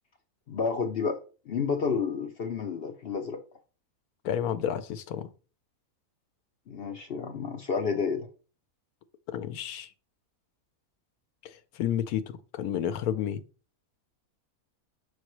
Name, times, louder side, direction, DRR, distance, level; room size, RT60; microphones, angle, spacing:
voice 1, 0.5-1.2 1.5-3.4 6.7-8.3, left 5 dB, 60° left, 0.6 m, -30 dB
voice 2, 4.2-5.3 9.3-9.9 11.4-13.4, left 9 dB, 80° left, 1.1 m, -31 dB
6.4 x 5.1 x 3.0 m
omnidirectional pair, 1.6 m